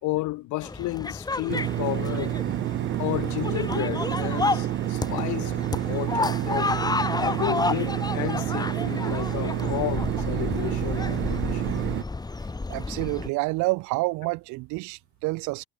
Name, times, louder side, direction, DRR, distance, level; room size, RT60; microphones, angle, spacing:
voice 1, 0.0-2.4 3.0-5.5 5.9-6.7 7.2-11.8, left 20 dB, 60° left, 4.1 m, -32 dB
sound 1, 0.6-13.3, left 3 dB, 10° left, 2.2 m, -31 dB
sound 2, 1.5-12.0, right 14 dB, 35° right, 0.6 m, -29 dB
voice 2, 12.7-15.6, right 24 dB, 60° right, 0.9 m, -28 dB
supercardioid pair, 115°, 34 cm